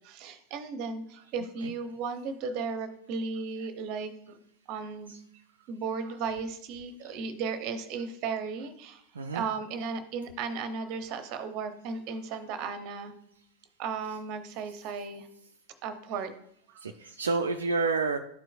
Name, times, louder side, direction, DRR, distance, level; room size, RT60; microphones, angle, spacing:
voice 1, 0.0-4.4 4.7-5.1 5.7-9.0 9.3-13.1 13.8-15.3 15.8-16.3 16.7-16.9, right 5 dB, 40° right, 10 dB, 0.7 m, -35 dB
voice 2, 1.4-1.7 5.1-5.2 7.0-7.1 9.1-9.4 14.6-14.7 16.8-18.2, right 4 dB, 70° right, 5 dB, 0.3 m, -30 dB
11.5 x 4.5 x 2.3 m, 0.71 s
figure-of-eight pair, 90°, 0 cm